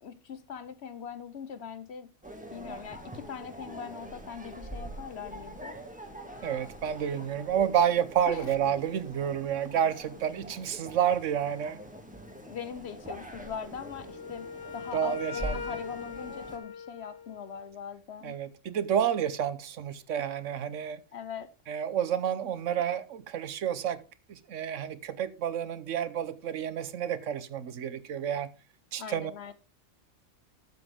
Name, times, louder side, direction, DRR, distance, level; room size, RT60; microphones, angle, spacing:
voice 1, 0.0-2.1 2.5-5.8 8.3-8.5 12.4-14.5 14.7-18.4 21.1-21.5 29.0-29.5, left 7 dB, 60° left, 1.1 m, -41 dB
sound 1, 2.2-16.6, right 1 dB, 5° right, 1.8 m, -44 dB
voice 2, 6.4-11.8 14.9-15.6 18.2-21.0 21.7-24.0 24.3-28.5 28.9-29.3, right 9 dB, 80° right, 1.2 m, -30 dB
Wind instrument woodwind instrument, 13.8-17.7, left 5 dB, 30° left, 0.5 m, -41 dB
12.0 x 7.7 x 3.6 m
omnidirectional pair, 1.3 m